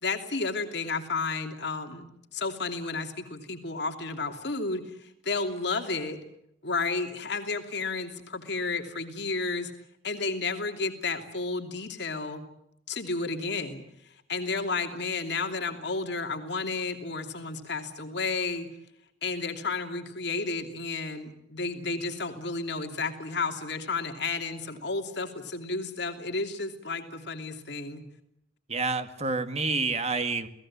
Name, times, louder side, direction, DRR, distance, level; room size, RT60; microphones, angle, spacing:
voice 1, 0.0-6.2 6.6-9.7 10.0-12.4 12.9-18.7 19.2-28.0, left 3 dB, 60° left, 5 dB, 2.9 m, -32 dB
voice 2, 28.7-30.5, right 3 dB, 35° right, 9 dB, 2.0 m, -28 dB
29.5 x 18.5 x 8.6 m, 0.82 s
head